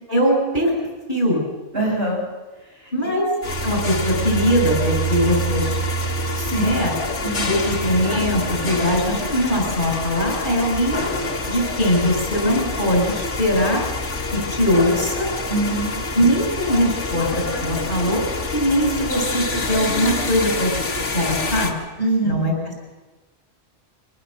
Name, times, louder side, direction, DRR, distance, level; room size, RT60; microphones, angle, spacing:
voice 1, 0.1-0.7 1.1-1.5 2.9-3.3 3.6-5.8 6.6-6.9 7.4-11.0 11.5-13.8 14.3-15.3 16.1-18.2 18.5-21.7 22.2-22.7, equal, 45° left, 1 dB, 7.1 m, -21 dB
voice 2, 1.7-2.2 6.3-6.8 7.2-7.5 15.5-15.9 22.0-22.4, right 2 dB, 55° right, -1 dB, 7.5 m, -23 dB
sound 1, 3.4-21.7, left 1 dB, 85° left, 2.4 m, -26 dB
24.5 x 19.0 x 7.8 m, 1.2 s
omnidirectional pair, 1.2 m